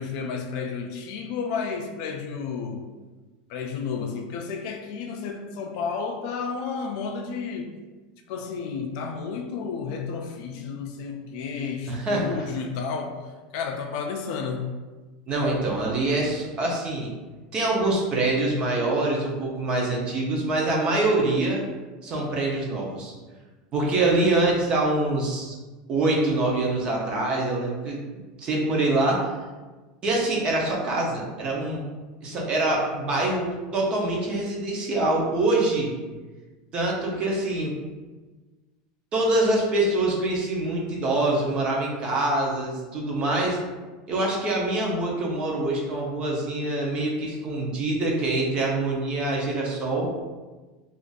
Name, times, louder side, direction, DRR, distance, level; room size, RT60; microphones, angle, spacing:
voice 1, 0.0-2.8 3.5-7.7 8.3-13.2 13.5-14.7, left 5 dB, 55° left, 3 dB, 0.4 m, -31 dB
voice 2, 11.9-12.5 15.3-17.1 17.5-21.6 22.0-23.1 23.7-25.5 25.9-28.0 28.4-29.3 30.0-31.8 32.2-35.9 36.7-37.8 39.1-43.6 44.1-50.1, right 2 dB, 25° right, -2 dB, 0.6 m, -25 dB
2.5 x 2.4 x 3.9 m, 1.3 s
supercardioid pair, 160°, 4 cm